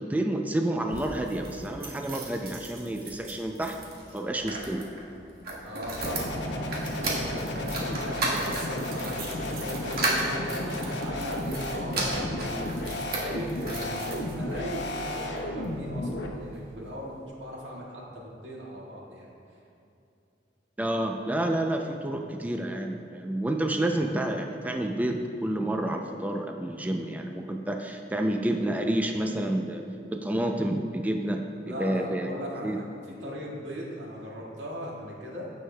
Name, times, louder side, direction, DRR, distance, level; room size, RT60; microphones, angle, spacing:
voice 1, 0.0-3.8 4.1-4.9 20.8-29.8 30.1-32.3 32.6-32.8, right 1 dB, 10° right, 3 dB, 0.4 m, -29 dB
sound 1, 0.8-14.8 15.4-16.2 16.5-16.6 16.8-16.9, right 2 dB, 60° right, 1.5 m, -35 dB
voice 2, 5.6-9.2 9.5-12.6 13.0-19.3 31.6-35.4, equal, 85° right, -4 dB, 1.9 m, -39 dB
sound 2, 6.0-16.3, left 1 dB, 75° left, 0.9 m, -33 dB
15.5 x 6.4 x 2.2 m, 2.7 s
head